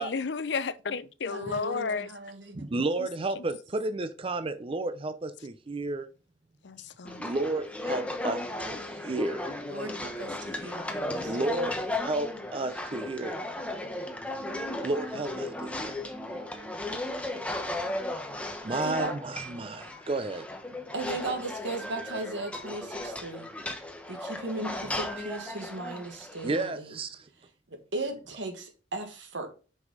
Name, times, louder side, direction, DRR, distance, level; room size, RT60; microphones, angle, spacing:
voice 1, 0.0-2.1 6.6-7.2, left 5 dB, 70° left, 0.5 m, -32 dB
voice 2, 1.3-2.7 9.7-11.4 18.8-19.1 20.9-23.5 24.1-27.0 27.7-29.5, right 2 dB, 85° right, 1.7 m, -37 dB
voice 3, 2.6-6.1 7.2-9.5 11.2-13.4 14.8-16.0 18.6-20.5 26.4-27.3, right 2 dB, 30° right, 0.5 m, -32 dB
sound 1, 7.1-26.7, left 1 dB, 5° left, 0.9 m, -36 dB
6.0 x 5.5 x 3.8 m
head